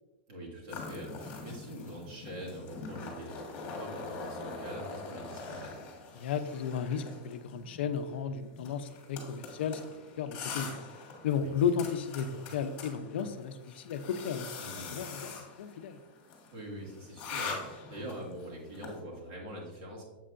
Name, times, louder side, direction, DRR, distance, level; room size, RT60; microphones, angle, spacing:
voice 1, 0.3-5.8 11.3-11.6 14.6-15.0 16.5-20.0, equal, 50° right, -3 dB, 2.1 m, -44 dB
sound 1, 0.7-19.0, left 4 dB, 35° left, 1.5 m, -43 dB
voice 2, 6.2-9.8 10.2-10.7 11.2-14.5 14.9-16.0, left 7 dB, 75° left, 10 dB, 0.5 m, -34 dB
7.4 x 5.4 x 2.5 m, 1.1 s
supercardioid pair, 155°, 6 cm